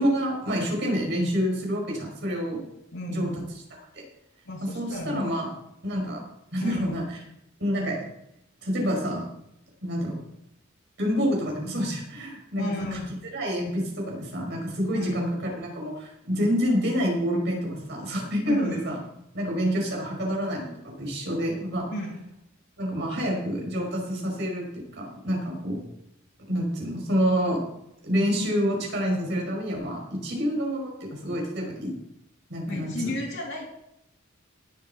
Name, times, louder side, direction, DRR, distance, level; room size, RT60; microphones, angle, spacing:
voice 1, 0.0-2.6 3.1-3.3 3.9-4.0 4.6-5.5 5.8-6.2 6.5-7.0 7.6-8.0 8.6-9.2 9.8-10.2 11.0-13.0 13.3-19.0 19.3-21.9 22.8-24.7 24.9-25.8 26.5-27.6 28.0-31.9 32.5-33.2, equal, 60° right, -1 dB, 5.3 m, -27 dB
voice 2, 2.9-3.4 4.5-5.3 6.6-6.9 12.6-13.1 14.9-15.1 18.5-19.0 21.9-22.1 32.6-33.7, left 1 dB, 65° left, -3 dB, 2.6 m, -33 dB
19.0 x 7.5 x 4.4 m, 0.80 s
head